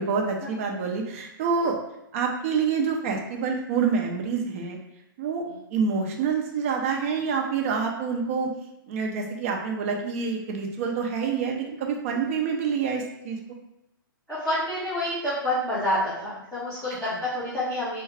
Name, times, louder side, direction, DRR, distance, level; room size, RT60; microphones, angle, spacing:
voice 1, 0.0-1.8 2.1-4.8 5.2-5.4 5.7-8.5 8.9-13.4, right 5 dB, 40° right, 1 dB, 0.7 m, -27 dB
voice 2, 14.3-18.0, left 1 dB, ahead, -16 dB, 1.3 m, -28 dB
4.6 x 2.2 x 3.4 m, 0.83 s
hypercardioid pair, 165°, 12 cm